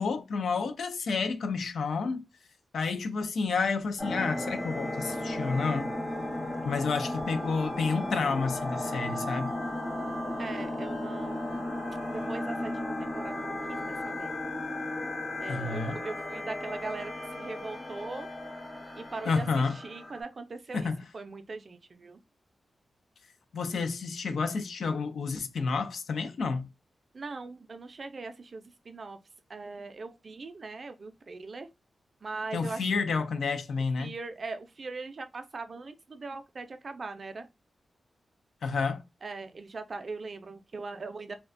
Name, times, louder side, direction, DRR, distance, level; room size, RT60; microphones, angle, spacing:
voice 1, 0.0-2.3 2.7-5.9 6.6-9.5 15.5-16.0 19.2-19.8 20.7-21.1 23.5-26.7 32.5-34.1 38.6-39.0, left 4 dB, 85° left, 0.4 m, -30 dB
sound 1, 4.0-20.2, left 1 dB, 25° left, 0.8 m, -35 dB
voice 2, 10.4-11.6 12.1-14.3 15.4-18.3 19.0-20.9 21.1-22.2 27.1-29.2 29.5-31.7 32.2-32.8 34.0-37.5 39.2-41.4, right 3 dB, 50° right, 0.4 m, -40 dB
2.4 x 2.1 x 2.4 m
wide cardioid pair, 100°, 0 cm